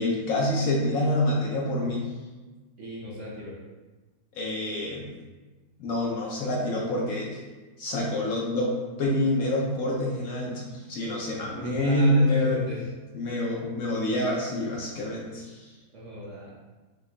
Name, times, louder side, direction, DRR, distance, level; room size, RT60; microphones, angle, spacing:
voice 1, 0.0-2.1 4.3-5.1 5.8-7.4 7.8-12.6 13.1-15.7, left 1 dB, 65° left, -3 dB, 1.0 m, -27 dB
voice 2, 2.8-3.6 11.3-12.9 15.9-16.5, equal, 55° right, -5 dB, 0.9 m, -36 dB
5.1 x 2.3 x 3.7 m, 1.2 s
omnidirectional pair, 1.8 m